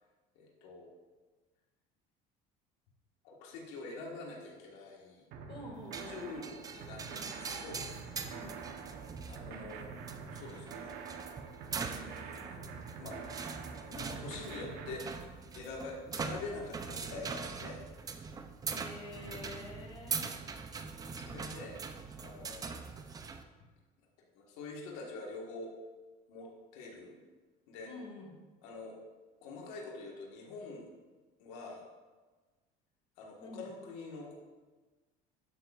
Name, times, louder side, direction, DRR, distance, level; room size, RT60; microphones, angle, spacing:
voice 1, 0.3-0.9 3.2-5.3 6.1-7.8 9.2-9.9 10.3-10.9 11.9-12.6 13.0-13.2 13.9-15.3 15.5-17.8 21.2-21.8 22.2-22.8 24.2-25.7 26.3-27.2 27.7-27.9 28.6-29.0 29.4-30.9 31.4-31.8 33.2-34.4, left 3 dB, 80° left, -2 dB, 1.7 m, -45 dB
sound 1, 5.3-15.0, right 5 dB, 65° right, 1.0 m, -46 dB
voice 2, 5.5-6.2 8.3-8.6 18.6-20.3 27.8-28.3 33.4-33.6, left 2 dB, 30° left, -1 dB, 2.2 m, -47 dB
sound 2, 5.9-23.4, right 5 dB, 20° right, 0.5 m, -42 dB
11.5 x 7.8 x 2.5 m, 1.3 s
cardioid pair, 135°, 18 cm